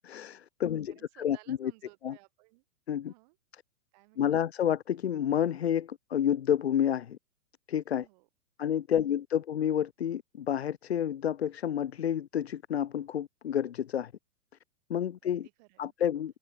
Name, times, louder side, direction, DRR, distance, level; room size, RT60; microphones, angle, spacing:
voice 1, 0.0-1.7 2.0-2.2 2.9-3.1 4.2-7.2 7.7-8.1 8.6-14.1 14.9-15.5 15.8-16.4, left 9 dB, 45° left, 0.5 m, -30 dB
voice 2, 0.6-2.6 3.1-3.4 3.9-4.3 8.0-8.3 8.9-9.2 15.2-15.9, right 25 dB, 25° right, 4.2 m, -60 dB
hypercardioid pair, 170°, 47 cm